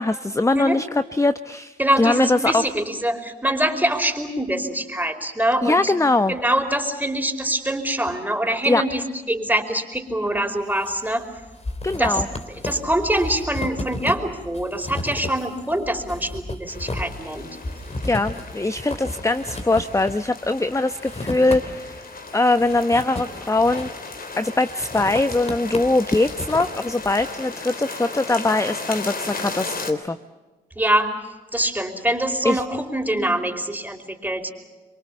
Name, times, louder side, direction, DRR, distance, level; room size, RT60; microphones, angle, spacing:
voice 1, 0.0-2.7 5.6-6.4 8.7-8.8 11.8-12.3 18.0-23.9 24.4-30.2 32.4-32.6, left 2 dB, 15° left, 11 dB, 1.0 m, -21 dB
voice 2, 1.8-5.9 6.3-11.3 12.0-12.2 12.6-17.5 30.8-31.2 31.5-34.5, right 1 dB, 10° right, 6 dB, 5.0 m, -24 dB
sound 1, 10.4-11.0 11.2-22.0 22.4-24.2 24.6-27.3, left 1 dB, 30° left, 3.7 m, -33 dB
sound 2, 16.7-29.9, left 3 dB, 45° left, 3.7 m, -36 dB
27.0 x 23.5 x 7.3 m, 1.2 s
hypercardioid pair, 40°, 20 cm